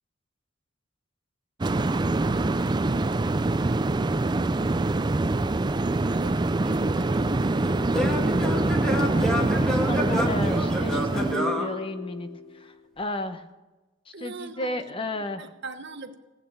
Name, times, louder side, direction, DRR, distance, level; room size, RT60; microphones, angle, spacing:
sound 1, 1.6-11.4, right 2 dB, 20° right, 0.4 m, -24 dB
voice 1, 6.0-6.4 6.8-7.2 14.1-14.8 15.1-16.2, right 3 dB, 60° right, 8 dB, 1.1 m, -41 dB
Singing / Plucked string instrument, 6.7-12.5, equal, 5° left, 2.1 m, -29 dB
voice 2, 9.4-12.3 12.6-13.4 14.2-15.4, left 2 dB, 30° left, 9 dB, 0.9 m, -33 dB
18.0 x 8.7 x 7.3 m, 1.1 s
head